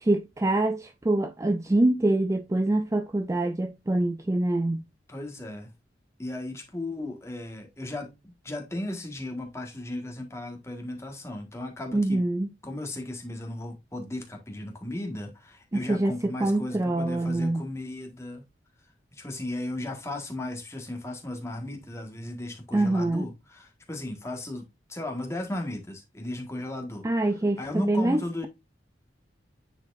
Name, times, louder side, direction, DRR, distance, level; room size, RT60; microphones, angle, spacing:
voice 1, 0.0-4.8 11.9-12.5 15.7-17.6 22.7-23.3 27.0-28.5, right 2 dB, 15° right, 0.4 m, -25 dB
voice 2, 5.1-5.7 6.2-12.2 12.6-18.4 19.1-27.1 27.6-28.5, left 1 dB, 15° left, 1.6 m, -36 dB
9.5 x 4.3 x 2.5 m
head